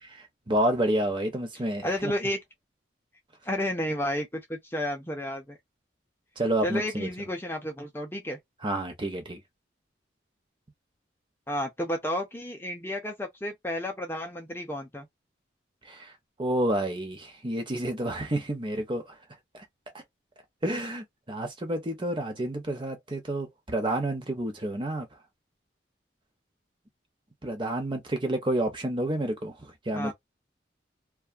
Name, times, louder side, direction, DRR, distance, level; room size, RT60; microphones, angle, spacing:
voice 1, 0.5-2.1 6.4-7.1 8.6-9.4 15.8-16.1 16.4-19.2 19.5-19.6 20.6-25.1 27.4-30.1, right 1 dB, 25° right, 0.7 m, -29 dB
voice 2, 1.8-2.4 3.4-5.6 6.6-8.4 11.5-15.1 29.9-30.1, left 1 dB, 10° left, 0.5 m, -31 dB
2.5 x 2.3 x 2.5 m
head